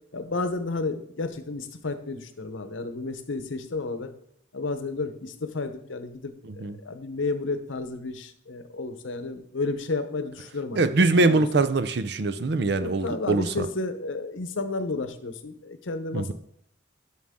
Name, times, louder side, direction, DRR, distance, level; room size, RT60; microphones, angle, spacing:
voice 1, 0.1-4.1 4.5-10.8 11.2-11.7 12.8-16.3, left 3 dB, 85° left, 9 dB, 0.8 m, -32 dB
voice 2, 10.8-13.7 16.1-16.3, right 3 dB, 55° right, 12 dB, 0.5 m, -23 dB
11.0 x 6.2 x 3.6 m, 0.69 s
head